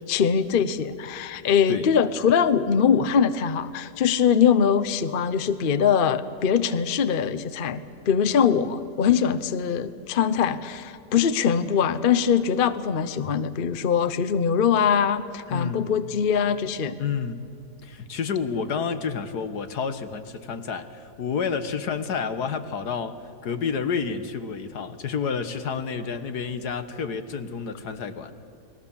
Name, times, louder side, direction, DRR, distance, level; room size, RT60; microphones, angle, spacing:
voice 1, 0.1-17.0, left 7 dB, 45° left, 13 dB, 0.8 m, -22 dB
voice 2, 15.5-15.9 17.0-17.4 17.8-23.2 23.4-28.3, left 6 dB, 75° left, 10 dB, 1.8 m, -29 dB
30.0 x 21.5 x 7.2 m, 2.6 s
omnidirectional pair, 1.7 m